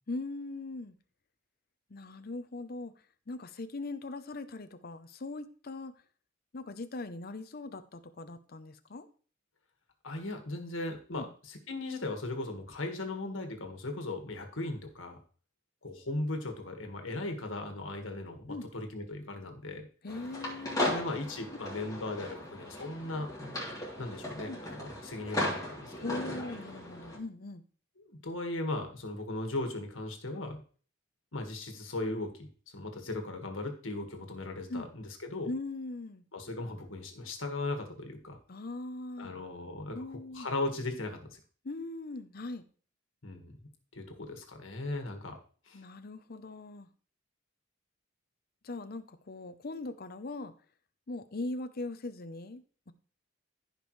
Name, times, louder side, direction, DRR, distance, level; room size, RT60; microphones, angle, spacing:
voice 1, 0.1-0.9 1.9-2.9 3.3-5.9 6.5-9.1 11.1-11.3 18.5-18.7 20.0-21.0 24.5-24.6 26.0-27.6 34.7-34.9 35.5-36.2 38.5-39.3 39.9-40.5 41.6-42.6 45.7-46.9 48.6-50.5 51.1-52.9, left 2 dB, 50° left, 11 dB, 0.7 m, -40 dB
voice 2, 10.0-15.2 15.8-19.9 20.8-23.3 24.0-26.2 28.0-30.6 31.3-35.5 36.3-38.4 39.2-41.4 43.2-43.5 43.9-45.4 45.7-45.8, left 2 dB, 80° left, 4 dB, 1.8 m, -38 dB
sound 1, 20.1-27.2, left 1 dB, 20° left, 3.1 m, -37 dB
15.0 x 5.2 x 3.2 m, 0.41 s
head